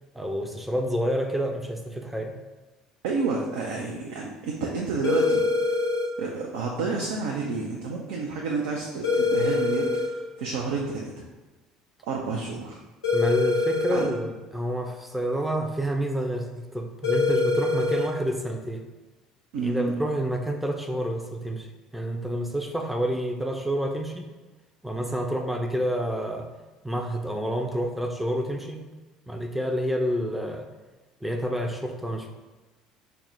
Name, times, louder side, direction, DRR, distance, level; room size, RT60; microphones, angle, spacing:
voice 1, 0.1-2.3 13.1-18.9 19.6-21.7 21.9-24.3 24.8-26.5 26.8-28.8 29.3-30.7 31.2-32.3, equal, 5° right, 3 dB, 0.5 m, -28 dB
voice 2, 3.0-5.4 6.2-11.2 12.1-12.8 13.9-14.1 19.5-20.0, right 4 dB, 60° right, -1 dB, 0.4 m, -30 dB
sound 1, 5.0-6.1 9.0-10.1 13.0-14.1 17.0-18.1, left 3 dB, 80° left, 0.8 m, -24 dB
3.3 x 2.0 x 4.1 m, 1.2 s
figure-of-eight pair, 60°, 3 cm